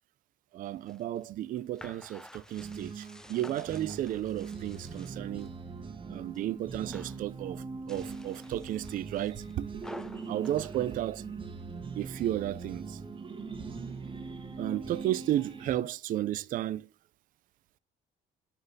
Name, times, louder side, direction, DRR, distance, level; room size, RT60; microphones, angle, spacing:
voice 1, 0.5-5.5 6.1-9.7 10.3-11.2 12.0-13.0 14.6-16.9, right 13 dB, 55° right, 0.4 m, -33 dB
sound 1, 0.7-5.5 5.9-6.5 6.7-7.3 7.7-11.6, left 1 dB, 5° left, 0.5 m, -51 dB
sound 2, 2.5-15.7, right 4 dB, 30° right, 1.4 m, -41 dB
9.8 x 4.0 x 2.7 m
cardioid pair, 110°, 17 cm